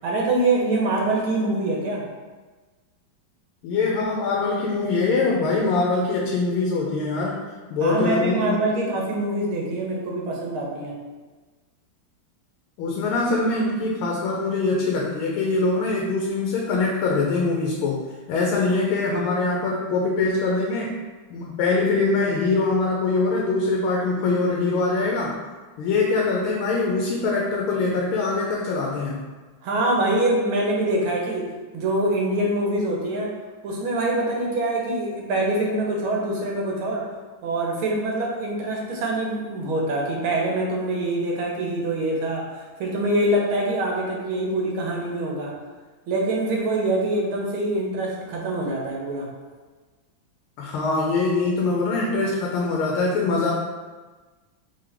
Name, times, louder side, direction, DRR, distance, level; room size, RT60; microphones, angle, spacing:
voice 1, 0.0-2.0 7.8-10.9 29.6-31.5 31.7-33.3 33.6-37.1 37.4-42.4 42.8-45.5 46.1-49.3, right 2 dB, 80° right, -2 dB, 1.7 m, -24 dB
voice 2, 3.6-7.4 7.7-8.6 12.8-18.0 18.3-20.9 21.3-25.4 25.8-29.2 50.6-53.5, left 3 dB, 90° left, -2 dB, 1.5 m, -23 dB
3.7 x 3.6 x 3.4 m, 1.3 s
omnidirectional pair, 2.2 m